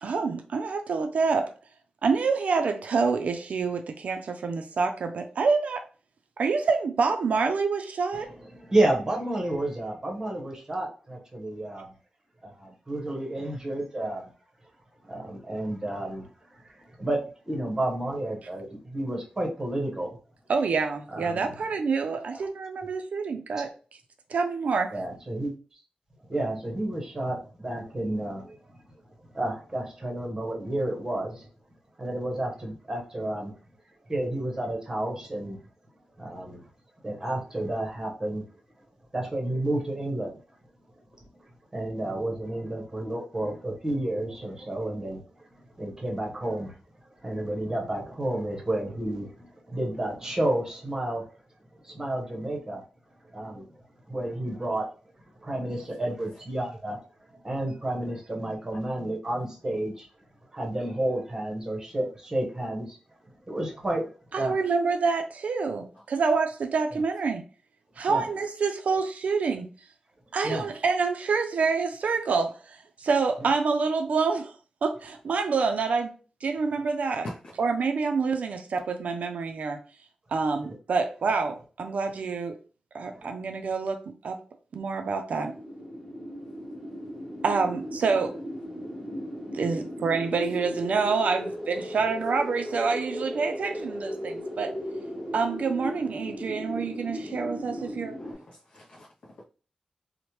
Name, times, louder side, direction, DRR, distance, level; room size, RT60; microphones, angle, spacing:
voice 1, 0.0-1.5 2.0-5.8 6.4-8.3 20.5-23.7 24.3-24.9 64.3-67.4 68.0-69.7 70.3-74.6 74.8-76.1 76.4-77.3 77.6-79.8 80.3-82.6 82.9-84.0 84.2-84.4 84.7-85.5 87.4-88.4 89.5-94.7 95.3-98.1, right 4 dB, 65° right, 6 dB, 0.3 m, -27 dB
voice 2, 8.7-11.9 12.4-14.3 15.1-20.2 21.1-21.5 22.3-22.5 24.9-25.5 26.3-28.5 29.3-31.5 32.0-33.5 34.1-35.6 36.2-36.6 37.0-38.4 39.1-40.4 41.7-45.2 45.8-46.8 47.2-51.2 51.8-52.8 53.3-53.7 54.1-54.9 55.4-57.0 57.4-60.1 60.5-63.0 63.5-64.1 64.4-64.5 68.1-68.2 70.4-70.6 73.4-73.5 83.2-83.3, right 1 dB, 25° right, 0 dB, 0.8 m, -31 dB
sound 1, 85.3-98.3, equal, 5° left, 1.0 m, -36 dB
voice 3, 98.2-99.4, left 1 dB, 55° left, -3 dB, 0.4 m, -43 dB
3.0 x 2.1 x 2.8 m, 0.37 s
wide cardioid pair, 150°, 3 cm